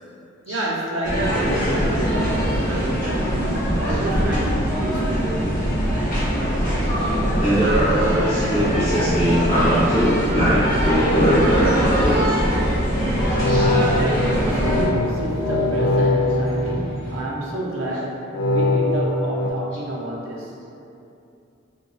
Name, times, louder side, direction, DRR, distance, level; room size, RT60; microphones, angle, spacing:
voice 1, 0.5-5.6 13.7-18.2 18.5-20.5, right 1 dB, 70° right, -4 dB, 0.6 m, -29 dB
sound 1, 1.0-14.8, equal, 45° left, 1.0 m, -22 dB
sound 2, 1.1-17.2, equal, 20° right, 1.0 m, -34 dB
voice 2, 7.4-12.4 13.4-13.7, equal, 30° left, -13 dB, 1.2 m, -21 dB
sound 3, 13.1-17.5 18.3-19.5, left 2 dB, 70° left, 0.3 m, -22 dB
3.9 x 2.3 x 2.5 m, 2.6 s
head